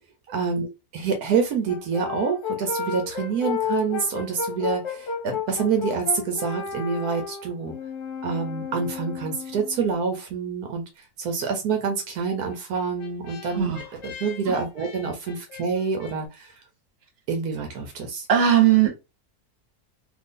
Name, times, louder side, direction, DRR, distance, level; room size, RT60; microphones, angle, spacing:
voice 1, 0.3-7.7 8.2-10.8 11.2-13.7 14.0-16.5 17.3-18.3, right 5 dB, 80° right, 4 dB, 1.2 m, -27 dB
Brass instrument, 1.7-10.0 12.5-16.2, left 7 dB, 60° left, 0.8 m, -33 dB
voice 2, 18.3-19.0, right 10 dB, 45° right, 0 dB, 1.2 m, -18 dB
2.7 x 2.6 x 3.6 m, 0.26 s
omnidirectional pair, 1.6 m